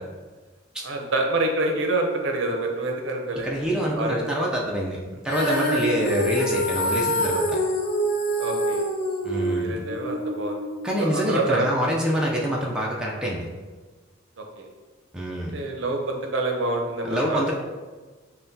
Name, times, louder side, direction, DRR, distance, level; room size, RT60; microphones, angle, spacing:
voice 1, 0.8-3.5 4.0-4.4 8.4-8.8 9.3-10.6 11.0-11.8 14.4-14.7 15.5-17.5, right 2 dB, 60° right, 2 dB, 0.6 m, -27 dB
voice 2, 3.4-7.6 9.2-9.8 10.8-13.5 15.1-15.6 17.0-17.5, equal, 5° right, -3 dB, 0.4 m, -26 dB
Female singing, 5.3-11.5, equal, 45° left, 0.7 m, -26 dB
5.6 x 2.2 x 2.6 m, 1.4 s
head